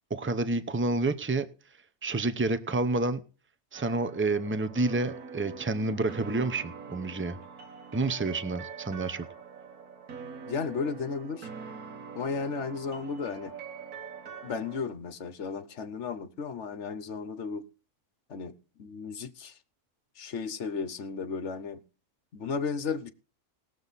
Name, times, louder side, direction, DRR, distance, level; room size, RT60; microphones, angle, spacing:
voice 1, 0.1-1.4 2.0-3.2 3.7-7.4 7.9-9.2, right 2 dB, 15° right, 0.4 m, -29 dB
sound 1, 3.7-14.8, right 6 dB, 80° right, 2.1 m, -44 dB
voice 2, 10.5-11.5 12.1-13.5 14.4-17.7 18.3-19.6 20.2-21.8 22.3-23.1, left 5 dB, 55° left, 1.1 m, -34 dB
19.5 x 7.1 x 4.1 m
omnidirectional pair, 1.6 m